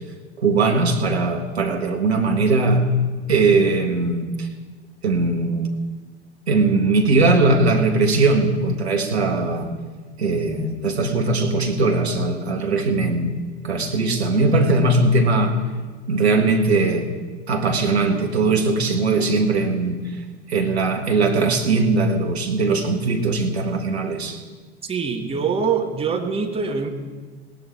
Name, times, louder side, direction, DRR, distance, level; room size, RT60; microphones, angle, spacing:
voice 1, 0.4-2.8 3.3-4.5 5.0-5.7 6.5-9.7 10.2-15.6 16.1-17.1 17.5-20.0 20.5-24.4, right 3 dB, 70° right, 4 dB, 1.9 m, -20 dB
voice 2, 24.9-26.9, right 5 dB, 15° right, 3 dB, 1.7 m, -24 dB
18.0 x 13.0 x 4.6 m, 1.3 s
figure-of-eight pair, 85°, 33 cm